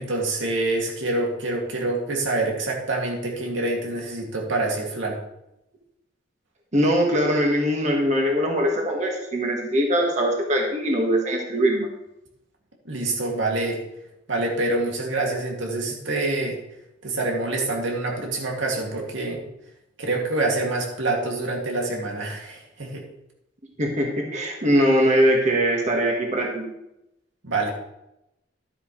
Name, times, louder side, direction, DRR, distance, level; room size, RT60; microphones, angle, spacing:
voice 1, 0.0-5.2 12.8-13.8 14.3-16.6 17.0-19.4 20.0-23.0 27.4-27.7, right 2 dB, 90° right, -1 dB, 2.5 m, -26 dB
voice 2, 6.7-11.9 23.8-26.7, equal, 40° right, 0 dB, 1.7 m, -21 dB
12.0 x 9.7 x 3.3 m, 0.85 s
head